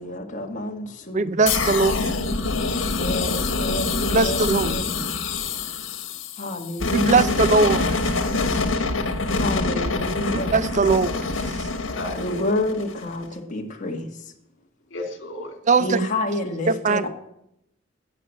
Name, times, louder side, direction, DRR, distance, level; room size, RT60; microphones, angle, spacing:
voice 1, 0.0-1.4 2.9-5.1 6.4-7.7 9.4-10.5 12.1-14.3 15.8-17.1, left 1 dB, 40° left, 1.6 m, -29 dB
voice 2, 1.1-2.0 4.1-4.8 6.9-8.2 10.5-11.2 11.4-11.7 15.7-16.1 16.7-17.0, right 4 dB, 40° right, 0.5 m, -20 dB
sound 1, 1.5-13.2, left 3 dB, 85° left, 1.5 m, -25 dB
voice 3, 2.4-3.4 11.9-12.5 14.9-15.5, left 1 dB, 65° left, 3.0 m, -36 dB
12.5 x 8.9 x 7.5 m
head